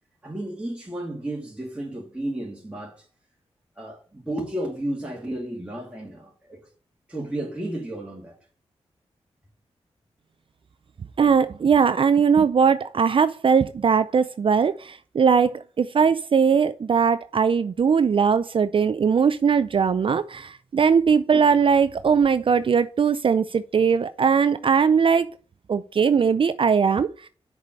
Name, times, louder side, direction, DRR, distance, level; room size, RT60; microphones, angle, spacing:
voice 1, 0.2-3.0 3.8-6.6 7.1-8.4, right 1 dB, 10° right, 2.7 m, -32 dB
voice 2, 11.2-25.3 25.7-27.3, right 6 dB, 50° right, 0.4 m, -20 dB
6.6 x 4.8 x 6.4 m
cardioid pair, 50°, 11 cm